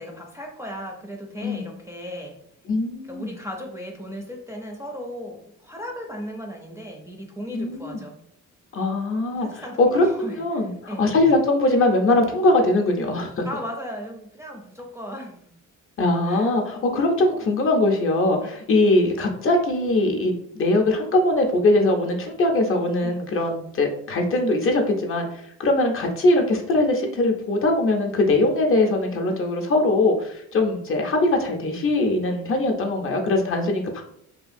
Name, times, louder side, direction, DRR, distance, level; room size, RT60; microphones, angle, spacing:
voice 1, 0.0-2.4 3.1-8.2 9.3-11.0 13.4-15.5 16.2-16.5 18.4-18.6 23.0-23.2, equal, 10° right, 0 dB, 0.4 m, -36 dB
voice 2, 1.4-1.7 2.7-3.3 7.5-8.0 8.7-13.4 16.0-34.0, left 2 dB, 45° left, 2 dB, 0.5 m, -21 dB
2.7 x 2.4 x 2.5 m, 0.69 s
cardioid pair, 95°, 31 cm